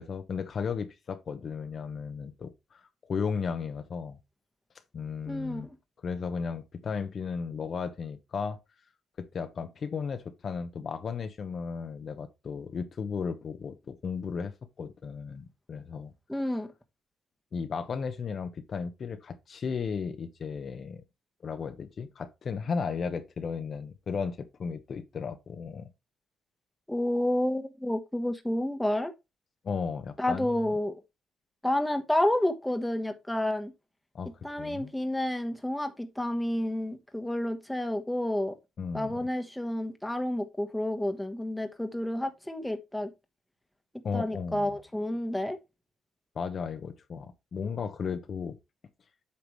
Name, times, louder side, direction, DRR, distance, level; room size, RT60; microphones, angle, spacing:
voice 1, 0.0-4.2 4.9-5.7 6.0-8.6 9.2-16.1 17.5-21.0 21.4-25.8 29.6-30.7 34.1-34.3 34.6-34.9 38.8-39.1 44.0-44.7 46.3-48.6, left 6 dB, 50° left, 1.0 m, -35 dB
voice 2, 5.3-5.7 16.3-16.7 26.9-29.1 30.2-30.9 31.6-33.7 34.4-38.5 38.9-43.1 44.1-45.6, left 1 dB, 5° left, 1.2 m, -30 dB
8.6 x 5.9 x 3.2 m
cardioid pair, 85°, 0 cm